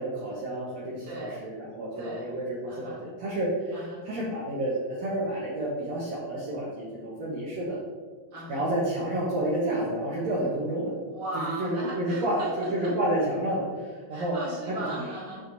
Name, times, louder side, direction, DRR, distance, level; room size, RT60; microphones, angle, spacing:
voice 1, 0.0-7.8 8.5-11.0 11.4-12.4 12.7-14.4, right 1 dB, 60° right, -6 dB, 2.1 m, -30 dB
voice 2, 1.0-1.5 2.0-2.3 2.7-3.0 3.7-4.0 8.3-8.6 11.1-12.9 14.1-15.5, right 1 dB, 20° right, -7 dB, 1.7 m, -37 dB
6.5 x 6.0 x 4.0 m, 1.5 s
omnidirectional pair, 4.2 m